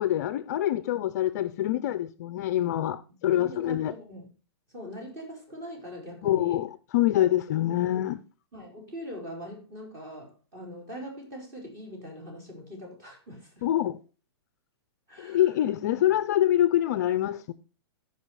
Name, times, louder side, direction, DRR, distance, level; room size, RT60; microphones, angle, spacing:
voice 1, 0.0-3.9 6.2-8.2 13.6-14.0 15.2-17.5, left 12 dB, 40° left, 0.6 m, -25 dB
voice 2, 3.3-4.3 4.7-6.6 8.5-13.6 15.1-15.5 15.8-16.0, equal, 20° right, 4.4 m, -42 dB
14.0 x 5.5 x 4.7 m
hypercardioid pair, 165°, 14 cm